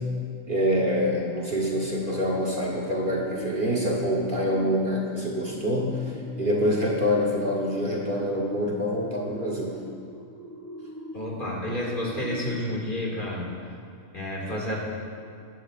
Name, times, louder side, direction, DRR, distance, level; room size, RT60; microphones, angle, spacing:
voice 1, 0.5-9.8, equal, 40° right, -3 dB, 1.3 m, -26 dB
sound 1, 2.2-12.9, equal, 20° left, 0.5 m, -41 dB
voice 2, 11.1-13.8 14.1-14.8, left 1 dB, 40° left, -4 dB, 2.2 m, -30 dB
17.0 x 11.0 x 2.5 m, 2.4 s
omnidirectional pair, 1.4 m